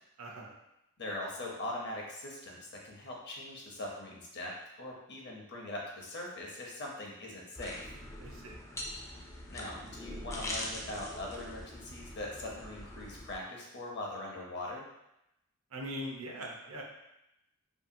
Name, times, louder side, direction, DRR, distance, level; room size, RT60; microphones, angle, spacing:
voice 1, 0.2-0.5 8.2-8.6 15.7-16.8, equal, 70° right, -1 dB, 0.6 m, -41 dB
voice 2, 1.0-7.8 9.5-14.8, left 1 dB, 50° left, -2 dB, 0.6 m, -41 dB
sound 1, 7.5-13.4, left 1 dB, 15° left, 0.3 m, -43 dB
2.7 x 2.5 x 2.6 m, 0.85 s
head